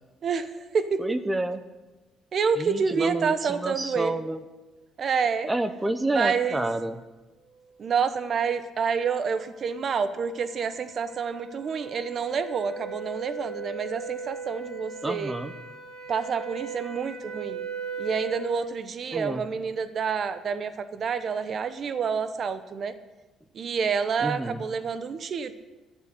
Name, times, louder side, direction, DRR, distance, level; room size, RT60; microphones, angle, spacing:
voice 1, 0.2-1.0 2.3-4.2 5.0-5.5 6.1-6.6 7.8-15.3 16.1-17.6 18.0-22.9 23.5-25.5, right 6 dB, 45° right, 12 dB, 0.9 m, -28 dB
voice 2, 1.0-1.6 2.6-4.4 5.5-7.0 15.0-15.5 19.1-19.5 24.2-24.6, right 2 dB, 15° right, 11 dB, 0.8 m, -29 dB
sound 1, 8.6-18.5, right 5 dB, 90° right, 4.5 m, -39 dB
11.0 x 7.5 x 9.6 m, 1.2 s
cardioid pair, 120°, 0 cm